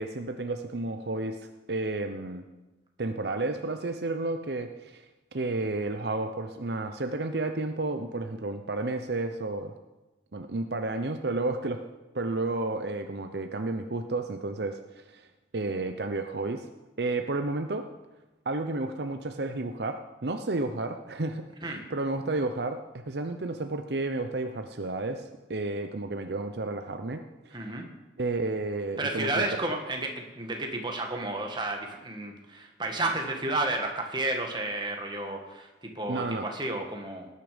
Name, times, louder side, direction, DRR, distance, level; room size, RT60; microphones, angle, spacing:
voice 1, 0.0-2.5 3.0-5.0 5.3-9.7 10.3-11.8 12.1-15.3 15.5-16.7 17.0-17.9 18.5-27.6 28.2-29.4 29.7-29.8 36.1-36.5, right 2 dB, 65° right, 7 dB, 0.8 m, -32 dB
voice 2, 27.5-27.9 29.0-37.3, right 2 dB, 25° right, 2 dB, 1.9 m, -32 dB
19.0 x 9.8 x 5.2 m, 1.1 s
head